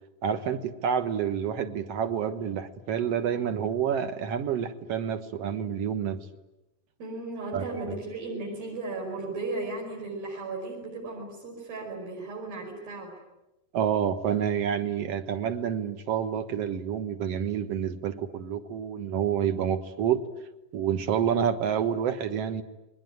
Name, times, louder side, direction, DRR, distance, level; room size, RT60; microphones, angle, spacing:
voice 1, 0.2-6.2 7.5-8.0 13.7-20.2 20.7-22.6, right 8 dB, 55° right, 10 dB, 2.0 m, -28 dB
voice 2, 7.0-13.2, right 3 dB, 80° right, 0 dB, 7.0 m, -35 dB
28.5 x 22.0 x 9.4 m, 0.98 s
omnidirectional pair, 4.2 m